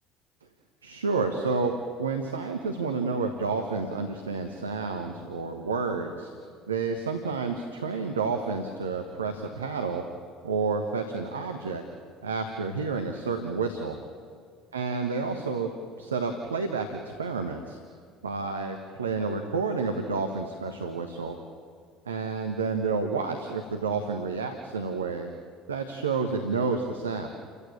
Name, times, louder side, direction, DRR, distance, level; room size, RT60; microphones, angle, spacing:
voice 1, 0.8-1.7 2.0-6.3 6.7-10.0 10.4-11.8 12.2-14.0 14.7-15.7 16.0-17.8 18.2-21.4 22.0-25.3 25.7-27.3, right 4 dB, 80° right, 5 dB, 1.3 m, -30 dB
29.5 x 15.5 x 8.7 m, 2.1 s
figure-of-eight pair, 60°, 0 cm